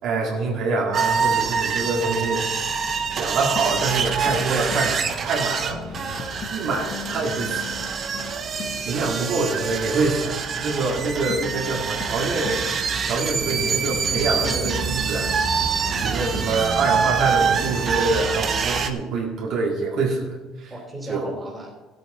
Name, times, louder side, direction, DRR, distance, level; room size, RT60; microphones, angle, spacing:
voice 1, 0.0-2.5 3.2-6.0 6.5-7.8 8.9-12.7 13.0-15.3 16.0-20.7 21.1-21.4, right 3 dB, 50° right, -2 dB, 2.2 m, -25 dB
sound 1, 0.9-18.9, right 6 dB, 30° right, 0.9 m, -25 dB
voice 2, 1.4-2.1 16.0-16.3 20.7-21.7, right 1 dB, 5° right, -2 dB, 3.2 m, -37 dB
sound 2, 3.6-5.0 5.7-8.9 11.3-12.7 13.4-16.6, left 8 dB, 45° left, 1.0 m, -37 dB
15.0 x 8.5 x 4.3 m, 1.3 s
cardioid pair, 155°, 0 cm